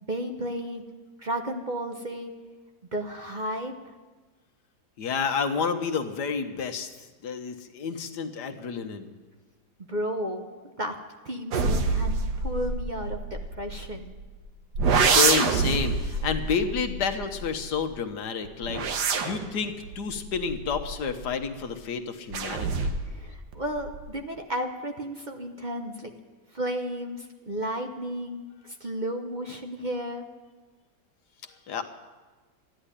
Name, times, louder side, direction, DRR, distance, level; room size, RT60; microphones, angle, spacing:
voice 1, 0.1-0.8 1.2-2.3 2.9-3.9 9.9-10.5 10.8-11.0 11.2-14.2 23.0-26.1 26.5-30.3, equal, 35° right, 3 dB, 0.9 m, -33 dB
voice 2, 5.0-6.9 7.2-9.1 14.9-18.8 19.2-22.9 31.7-31.8, left 6 dB, 85° left, 7 dB, 1.7 m, -30 dB
sound 1, 11.5-14.2 14.8-17.9 18.5-21.5 22.3-23.2 23.5-24.1, right 4 dB, 85° right, 1.7 m, -27 dB
14.0 x 10.5 x 9.9 m, 1.3 s
omnidirectional pair, 1.7 m